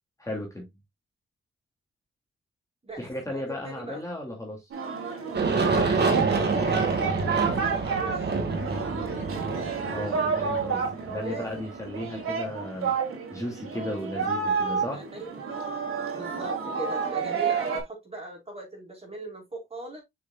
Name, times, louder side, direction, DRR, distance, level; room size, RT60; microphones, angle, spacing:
voice 1, 0.2-0.7 3.0-4.7 9.9-12.9 13.3-15.0, left 1 dB, 15° left, 2.7 m, -35 dB
voice 2, 3.3-4.0 5.8-8.3 11.2-11.5 13.7-13.9 14.9-15.3 16.1-20.0, right 1 dB, 30° right, 4.7 m, -39 dB
Singing, 4.7-17.8, right 6 dB, 90° right, 3.0 m, -30 dB
Aircraft, 5.3-12.0, right 4 dB, 55° right, 2.2 m, -27 dB
6.9 x 6.3 x 2.4 m
cardioid pair, 85°, 21 cm